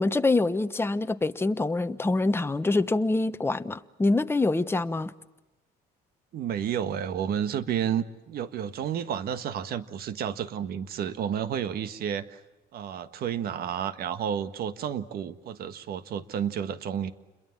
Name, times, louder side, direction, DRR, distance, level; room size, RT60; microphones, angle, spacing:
voice 1, 0.0-5.1, left 2 dB, 15° left, 1.1 m, -25 dB
voice 2, 6.3-12.4 12.7-17.1, right 9 dB, 65° right, 1.6 m, -31 dB
29.0 x 22.0 x 7.4 m
cardioid pair, 110°, 17 cm